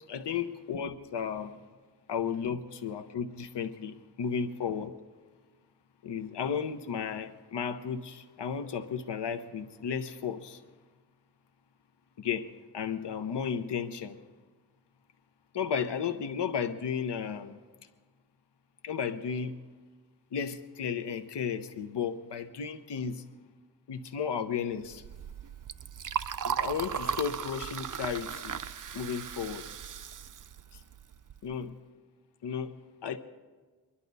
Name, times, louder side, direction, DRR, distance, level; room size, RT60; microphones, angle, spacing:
voice 1, 0.1-1.6 2.1-4.9 6.0-10.6 12.2-12.5 12.7-14.2 15.5-17.6 18.8-19.6 20.3-23.3 23.9-25.0 26.4-28.6 28.9-29.7 30.7-30.8 31.4-31.7 32.4-32.7 33.0-33.2, left 7 dB, 85° left, 8 dB, 0.8 m, -34 dB
Liquid, 24.9-31.5, right 8 dB, 50° right, 0.5 m, -37 dB
24.5 x 11.5 x 4.0 m, 1.4 s
wide cardioid pair, 75°, 41 cm